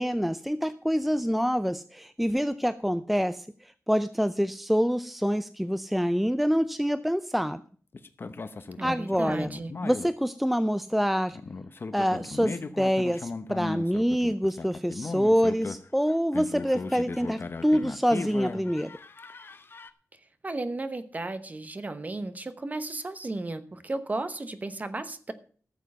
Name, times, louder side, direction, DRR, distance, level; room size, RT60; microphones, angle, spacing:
voice 1, 0.0-3.5 3.9-7.6 8.8-9.5 9.8-11.4 11.9-18.9, equal, ahead, 12 dB, 0.5 m, -26 dB
sound 1, 7.9-10.1 11.3-19.9, left 3 dB, 40° left, 0.8 m, -37 dB
voice 2, 8.8-9.7 20.4-25.3, right 2 dB, 30° right, 11 dB, 1.0 m, -34 dB
13.5 x 7.3 x 5.6 m, 0.43 s
wide cardioid pair, 130°, 6 cm